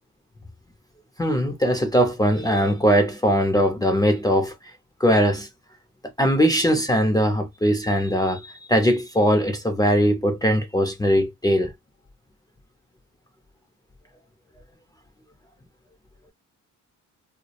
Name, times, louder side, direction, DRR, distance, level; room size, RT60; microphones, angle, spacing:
voice 1, 1.2-4.7 5.0-5.5 6.2-11.7, equal, 10° left, 0.5 m, -20 dB
2.3 x 2.0 x 2.7 m
cardioid pair, 115°, 33 cm